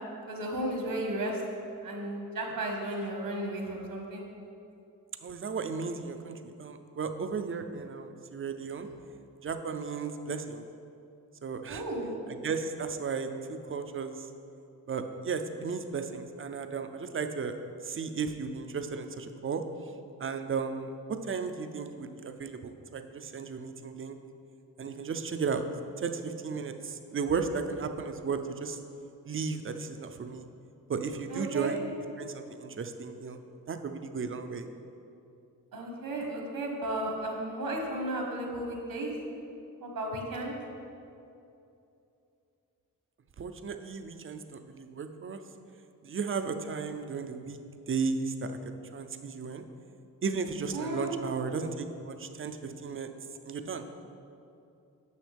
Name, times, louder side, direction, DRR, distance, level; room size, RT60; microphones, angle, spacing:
voice 1, 0.3-1.4 1.8-4.2 11.7-12.2 31.3-31.7 35.7-39.1 39.8-40.6 50.7-51.1, right 1 dB, 75° right, 1 dB, 1.4 m, -34 dB
voice 2, 5.2-8.9 9.4-10.7 11.4-11.8 12.4-14.3 14.9-17.6 17.8-19.6 20.2-24.2 24.8-25.6 26.0-28.8 29.3-30.4 30.9-31.8 32.2-33.4 33.7-34.7 43.4-45.4 46.0-47.6 47.9-49.6 50.2-53.1 53.4-53.9, right 5 dB, 40° right, 8 dB, 0.5 m, -35 dB
9.3 x 6.2 x 3.4 m, 2.7 s
cardioid pair, 90°, 34 cm